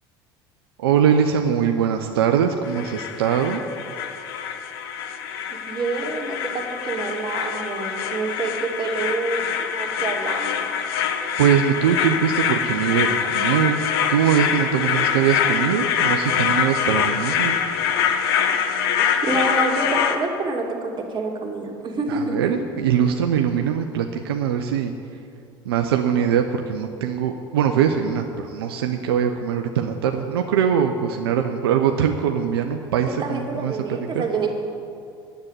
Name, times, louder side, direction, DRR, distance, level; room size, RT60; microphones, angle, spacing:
voice 1, 0.8-3.6 11.4-13.8 14.1-17.6 22.1-24.9 25.7-34.2, right 8 dB, 80° right, 5 dB, 0.7 m, -22 dB
sound 1, 2.6-20.2, left 8 dB, 75° left, 0.9 m, -24 dB
voice 2, 5.5-10.7 19.0-22.6 33.1-34.5, right 3 dB, 40° right, 1 dB, 2.3 m, -27 dB
9.7 x 8.0 x 8.9 m, 2.5 s
hypercardioid pair, 75°, 13 cm